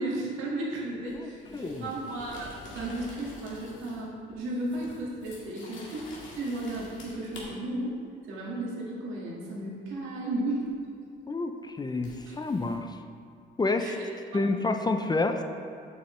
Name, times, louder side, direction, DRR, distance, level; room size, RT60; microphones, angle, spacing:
voice 1, 0.0-2.5 2.7-7.9 8.3-10.7 12.3-12.4 13.8-13.9 14.3-14.4, right 1 dB, 90° right, -4 dB, 1.7 m, -34 dB
sound 1, 1.0-4.1 4.4-7.4 10.7-10.8 12.0-12.8, left 2 dB, 75° left, 1.8 m, -48 dB
voice 2, 1.1-1.9 11.3-13.0 13.6-14.0 14.3-15.4, left 3 dB, 20° left, 6 dB, 0.5 m, -29 dB
7.8 x 6.7 x 3.1 m, 2.4 s
cardioid pair, 90°, 20 cm